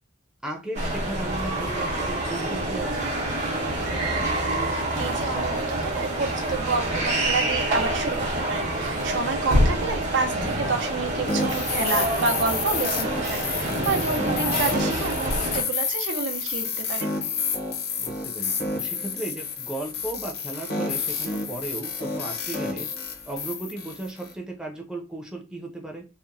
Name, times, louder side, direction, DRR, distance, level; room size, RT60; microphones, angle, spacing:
voice 1, 0.4-3.1 18.0-22.9 23.3-26.1, right 2 dB, 5° right, 0 dB, 0.4 m, -35 dB
sound 1, 0.7-15.6, right 1 dB, 40° right, 0.8 m, -27 dB
sound 2, 3.5-9.7, equal, 70° right, 0.9 m, -40 dB
voice 2, 4.7-17.1, right 4 dB, 85° right, 5 dB, 0.5 m, -29 dB
sound 3, 11.3-24.3, left 4 dB, 60° left, 0.6 m, -30 dB
2.8 x 2.0 x 2.5 m, 0.30 s
head